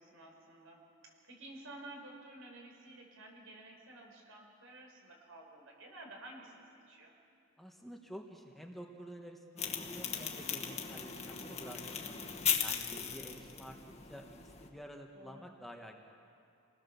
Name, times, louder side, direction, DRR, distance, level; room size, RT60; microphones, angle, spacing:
voice 1, 0.0-7.1 12.7-13.2 15.1-15.4, right 1 dB, 75° right, 1 dB, 5.5 m, -53 dB
voice 2, 7.6-12.1 12.6-13.8 14.0-16.1, equal, ahead, 2 dB, 1.4 m, -50 dB
sound 1, 9.6-14.7, left 7 dB, 30° left, 1.9 m, -38 dB
28.5 x 19.5 x 7.1 m, 2.6 s
head